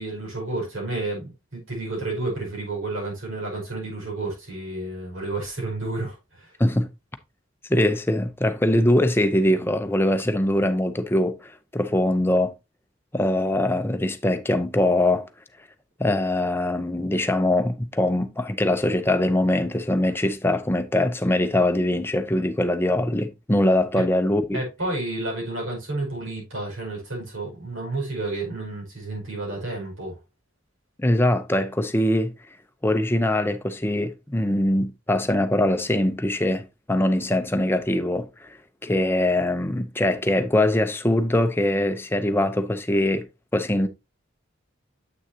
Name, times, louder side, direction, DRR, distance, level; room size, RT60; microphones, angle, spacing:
voice 1, 0.0-6.5 23.9-24.0 24.5-30.2, right 2 dB, 80° right, 5.3 m, -31 dB
voice 2, 7.7-12.5 13.1-15.2 16.0-24.6 31.0-32.3 32.8-38.6 38.8-43.3 43.5-43.9, left 1 dB, 10° left, 0.6 m, -22 dB
7.8 x 6.3 x 2.8 m
head